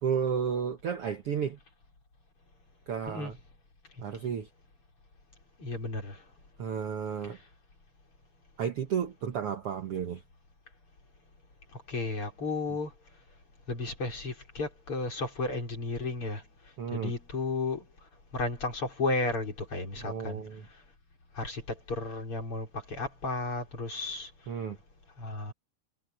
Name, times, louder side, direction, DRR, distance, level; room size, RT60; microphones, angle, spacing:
voice 1, 0.0-1.6 2.9-3.4 4.0-4.5 6.6-7.4 8.6-10.2 16.8-17.1 20.0-20.7 24.5-24.8, right 7 dB, 60° right, 1.7 m, -32 dB
voice 2, 5.6-6.2 11.7-12.9 13.7-16.4 16.9-17.8 18.3-20.4 21.3-24.3 25.2-25.5, left 2 dB, 40° left, 5.8 m, -33 dB
omnidirectional pair, 3.9 m